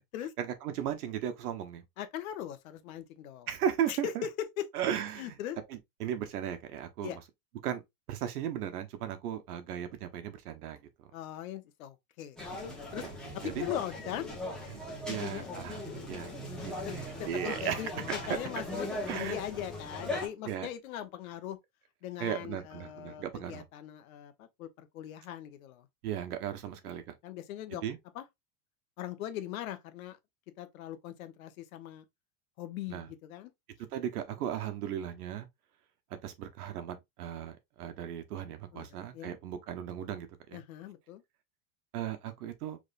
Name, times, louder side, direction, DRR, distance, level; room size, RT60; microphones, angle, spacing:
voice 1, 0.4-1.8 3.5-4.3 4.7-5.4 5.7-7.2 7.6-7.8 8.1-11.1 13.4-13.7 14.7-14.8 15.1-15.8 16.1-16.3 16.6-17.9 18.5-18.6 19.1-19.4 20.4-20.7 22.2-23.6 26.0-27.2 27.7-28.0 32.9-33.1 33.9-35.5 36.2-40.6 41.9-42.8, right 10 dB, 75° right, 1.3 m, -36 dB
voice 2, 2.0-3.5 3.9-4.6 5.2-5.6 7.0-7.2 11.1-13.0 13.3-14.3 15.1-15.5 16.8-21.6 22.0-25.9 27.2-27.8 28.1-28.2 29.0-30.2 30.6-32.0 32.6-33.5 38.7-38.9 39.1-39.4 40.5-41.2, left 11 dB, 65° left, 1.1 m, -40 dB
sound 1, 12.4-20.3, left 1 dB, ahead, 0.9 m, -39 dB
5.3 x 3.7 x 2.5 m
supercardioid pair, 170°, 45 cm